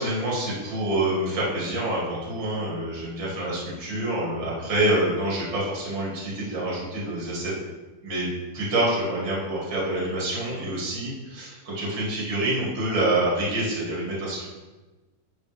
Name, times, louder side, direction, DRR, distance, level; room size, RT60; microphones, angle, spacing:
voice 1, 0.0-7.5 8.0-8.3 8.5-14.4, right 1 dB, 35° right, -6 dB, 2.8 m, -27 dB
9.4 x 5.1 x 3.5 m, 1.2 s
omnidirectional pair, 4.2 m